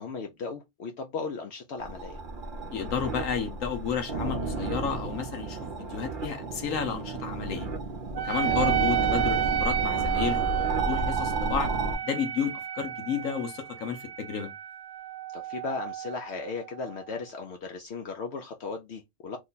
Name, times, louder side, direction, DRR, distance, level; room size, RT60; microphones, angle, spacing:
voice 1, 0.0-2.2 8.4-8.6 15.3-19.4, left 4 dB, 65° left, 0.8 m, -36 dB
sound 1, 1.8-12.0, right 3 dB, 50° right, 0.7 m, -32 dB
voice 2, 2.7-7.7 8.2-11.7 12.0-14.5, left 7 dB, 80° left, 1.2 m, -32 dB
Wind instrument woodwind instrument, 8.2-17.1, right 11 dB, 85° right, 1.0 m, -31 dB
3.0 x 2.2 x 3.8 m
omnidirectional pair, 1.3 m